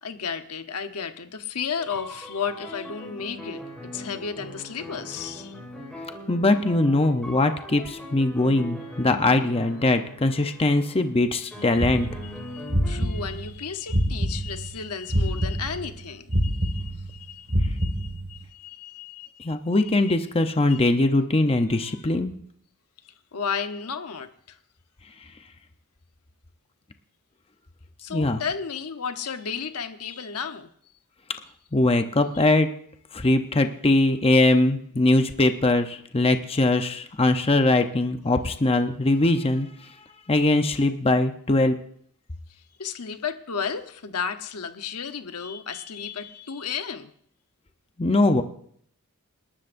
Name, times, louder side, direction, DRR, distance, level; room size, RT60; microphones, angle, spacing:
voice 1, 0.0-3.6 3.9-5.5 11.5-11.9 12.2-19.6 20.7-20.8 23.0-24.6 28.0-30.7 32.4-32.5 42.8-47.1, left 6 dB, 85° left, 8 dB, 1.0 m, -33 dB
sound 1, 1.8-11.1 11.5-13.4, left 1 dB, 5° left, 3.9 m, -40 dB
voice 2, 6.3-12.1 19.4-22.4 28.1-28.4 31.7-32.7 33.1-39.7 40.3-41.8 48.0-48.4, left 2 dB, 25° left, 7 dB, 0.7 m, -21 dB
sound 2, 11.8-14.7 15.1-18.4, equal, 45° right, 2.0 m, -26 dB
28.5 x 12.5 x 2.6 m, 0.64 s
head